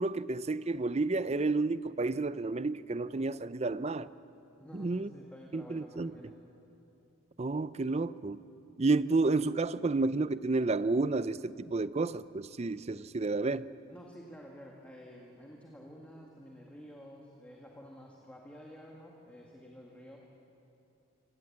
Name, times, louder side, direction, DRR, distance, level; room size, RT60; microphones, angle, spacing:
voice 1, 0.0-4.1 4.7-5.1 5.5-6.1 7.4-8.4 8.8-13.7, right 3 dB, 30° right, 16 dB, 0.5 m, -31 dB
voice 2, 4.6-6.4 13.9-20.2, equal, 5° left, -2 dB, 2.0 m, -51 dB
25.0 x 18.0 x 8.7 m, 2.8 s
head